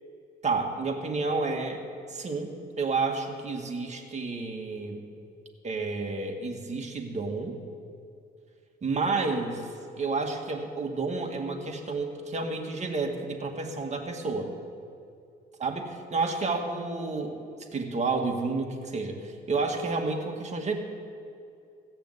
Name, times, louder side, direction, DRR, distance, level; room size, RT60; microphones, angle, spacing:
voice 1, 0.4-1.8 2.1-5.0 5.6-7.6 8.8-9.7 10.0-14.5 15.6-17.4 17.7-20.7, right 3 dB, 35° right, 2 dB, 1.9 m, -30 dB
15.5 x 6.7 x 8.1 m, 2.5 s
cardioid pair, 90°, 20 cm